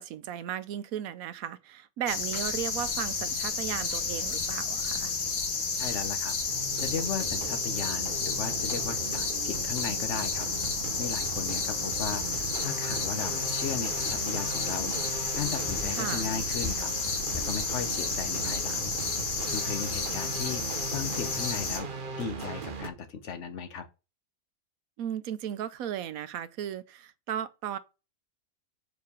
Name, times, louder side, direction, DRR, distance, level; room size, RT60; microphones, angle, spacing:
voice 1, 0.0-5.1 15.9-16.3 25.0-27.8, right 10 dB, 85° right, 1.1 m, -35 dB
sound 1, 2.1-21.8, left 4 dB, 80° left, 2.0 m, -31 dB
voice 2, 5.8-19.0 19.5-21.9 22.2-23.9, left 7 dB, 60° left, 1.1 m, -37 dB
sound 2, 6.5-22.9, right 5 dB, 45° right, 0.9 m, -39 dB
sound 3, 13.3-17.8, left 3 dB, 15° left, 1.5 m, -49 dB
4.9 x 4.5 x 5.3 m
omnidirectional pair, 1.4 m